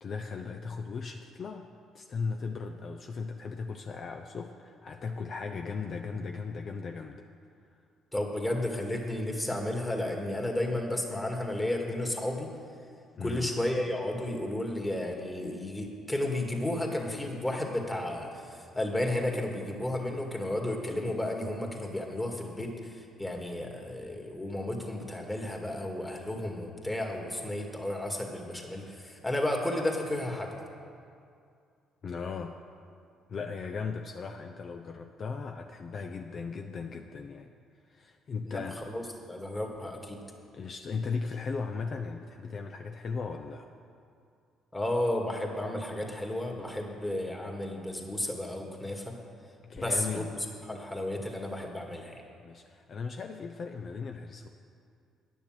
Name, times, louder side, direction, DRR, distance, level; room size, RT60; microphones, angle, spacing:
voice 1, 0.0-7.3 13.2-13.5 32.0-32.6 33.3-37.5 37.9-38.9 40.5-43.7 49.7-50.3 52.4-54.5, left 5 dB, 55° left, 5 dB, 0.6 m, -37 dB
voice 2, 8.1-12.5 13.2-22.9 23.2-30.5 38.4-38.6 38.9-40.2 44.7-49.1 49.8-50.3 50.7-52.2, left 1 dB, 15° left, 1 dB, 2.1 m, -33 dB
10.0 x 6.9 x 7.6 m, 2.4 s
hypercardioid pair, 60°, 0 cm